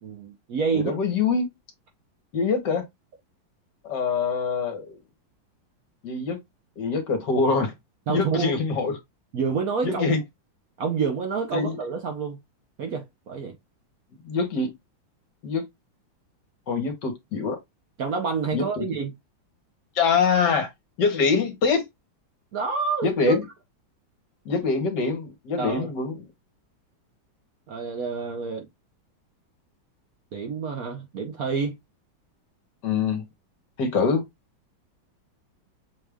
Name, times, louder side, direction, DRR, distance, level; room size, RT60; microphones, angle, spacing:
voice 1, 0.0-0.9 8.1-8.6 9.3-10.1 10.8-12.4 12.8-13.6 18.0-19.1 22.5-23.4 25.6-25.9 27.7-28.7 30.3-31.8, right 5 dB, 60° right, 1.0 m, -28 dB
voice 2, 0.7-1.5 2.3-2.8 3.8-5.0 6.0-6.4 6.8-7.7 8.1-8.9 9.8-10.2 11.5-11.8 14.2-14.7 15.4-15.6 16.7-17.6 18.5-18.8 19.9-20.7 21.0-21.8 23.0-23.4 24.4-26.2 32.8-33.2 33.8-34.2, left 5 dB, 65° left, 1.6 m, -24 dB
6.3 x 2.4 x 3.4 m
omnidirectional pair, 2.2 m